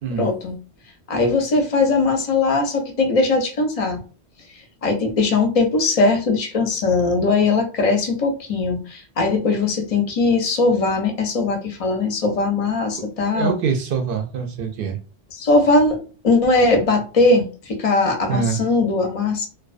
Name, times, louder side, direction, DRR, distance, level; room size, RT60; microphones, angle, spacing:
voice 1, 0.2-0.6 1.1-4.0 4.8-13.5 15.3-19.5, left 3 dB, 50° left, 4 dB, 0.4 m, -20 dB
voice 2, 13.3-15.0 18.3-18.6, right 6 dB, 60° right, 5 dB, 0.6 m, -24 dB
2.2 x 2.2 x 2.4 m, 0.35 s
omnidirectional pair, 1.2 m